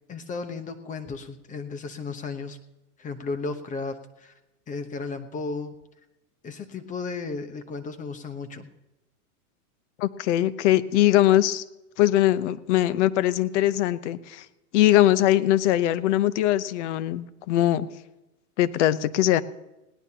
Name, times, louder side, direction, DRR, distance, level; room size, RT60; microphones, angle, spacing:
voice 1, 0.1-2.6 3.0-4.3 4.7-5.8 6.4-8.7, left 4 dB, 15° left, 8 dB, 0.9 m, -34 dB
voice 2, 10.0-11.6 12.0-14.4 14.7-17.9 18.6-19.4, left 13 dB, 50° left, 14 dB, 1.0 m, -21 dB
20.5 x 17.5 x 2.9 m, 0.98 s
hypercardioid pair, 140°, 46 cm